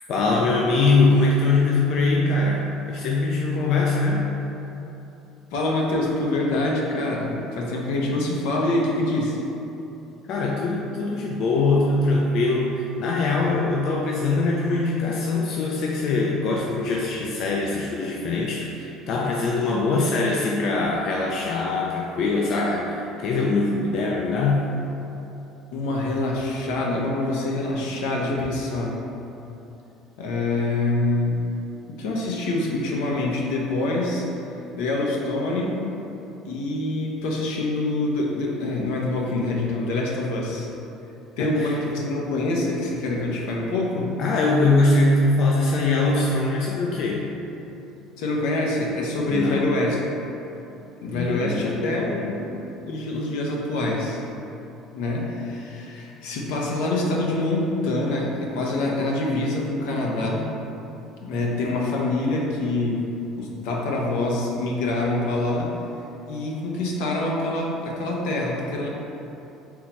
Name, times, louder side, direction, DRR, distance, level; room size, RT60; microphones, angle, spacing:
voice 1, 0.1-4.3 10.2-24.6 41.4-41.8 44.2-47.3 49.3-49.6 51.1-52.5, left 3 dB, 60° left, -2 dB, 0.4 m, -22 dB
voice 2, 5.5-9.4 25.7-28.9 30.2-31.4 31.9-34.3 34.7-35.8 36.4-40.7 41.4-44.1 48.2-50.0 51.0-52.5 52.9-54.2 54.9-60.5 61.2-63.0 63.4-65.7 66.3-68.9, left 2 dB, 85° left, -2 dB, 0.7 m, -25 dB
3.7 x 2.9 x 4.4 m, 3.0 s
cardioid pair, 115°, 0 cm